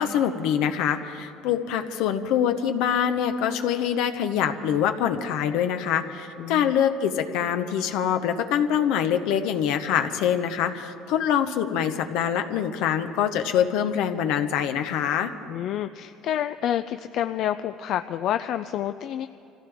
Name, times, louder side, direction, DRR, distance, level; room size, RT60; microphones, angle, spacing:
voice 1, 0.0-15.3, left 9 dB, 80° left, 8 dB, 0.9 m, -24 dB
voice 2, 6.4-6.7 15.5-19.3, left 11 dB, 65° left, 10 dB, 0.4 m, -28 dB
25.5 x 15.5 x 3.5 m, 2.7 s
cardioid pair, 105°, 0 cm